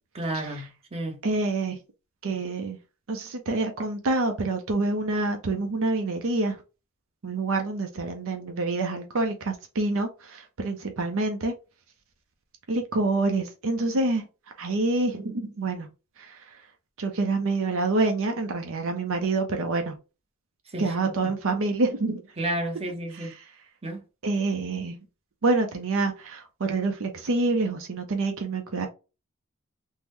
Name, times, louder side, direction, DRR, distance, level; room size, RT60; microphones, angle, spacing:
voice 1, 0.1-1.2 20.7-21.3 22.4-23.3 23.8-24.0, right 1 dB, 30° right, 0.9 m, -32 dB
voice 2, 1.2-1.8 2.2-2.8 3.1-6.6 7.2-11.5 12.7-14.3 14.6-15.9 16.2-16.6 17.0-20.0 20.8-22.2 23.1-23.3 24.2-25.0 25.4-28.9, right 3 dB, 65° right, 0.6 m, -27 dB
3.6 x 2.1 x 3.0 m
head